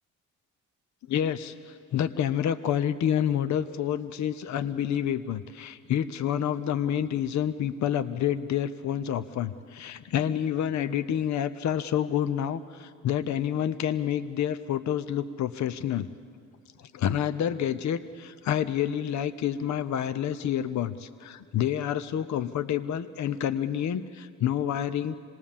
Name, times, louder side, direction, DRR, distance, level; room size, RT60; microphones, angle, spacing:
voice 1, 1.1-16.1 16.8-25.1, left 10 dB, 60° left, 12 dB, 0.8 m, -28 dB
26.0 x 20.0 x 7.3 m, 2.3 s
cardioid pair, 90°, 31 cm